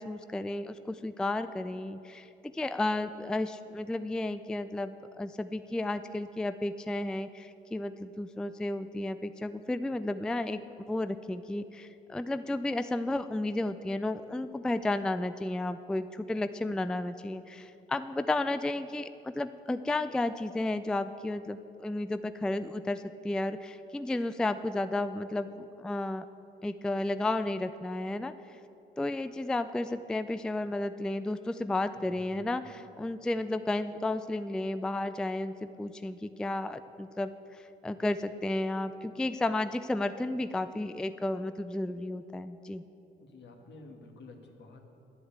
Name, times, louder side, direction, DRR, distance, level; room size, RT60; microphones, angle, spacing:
voice 1, 0.0-2.3 2.5-10.6 10.9-26.2 26.6-28.3 29.0-42.8, left 2 dB, 5° left, 12 dB, 0.3 m, -33 dB
voice 2, 32.1-32.7 43.2-44.8, left 2 dB, 60° left, 3 dB, 1.7 m, -51 dB
10.0 x 8.0 x 8.5 m, 2.9 s
cardioid pair, 90°, 20 cm